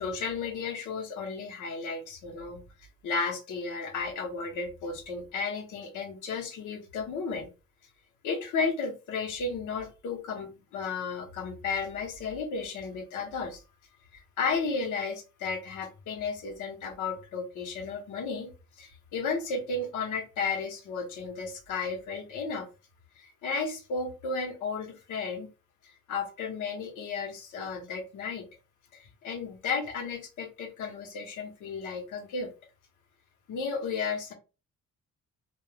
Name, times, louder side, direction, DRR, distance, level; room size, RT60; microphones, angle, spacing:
voice 1, 0.0-2.6 3.0-7.5 8.2-13.6 14.1-18.5 18.8-22.7 23.2-25.5 26.1-28.4 28.9-32.5 33.5-34.3, left 4 dB, 80° left, 2 dB, 1.0 m, -33 dB
3.2 x 2.4 x 2.3 m, 0.31 s
cardioid pair, 90°, 30 cm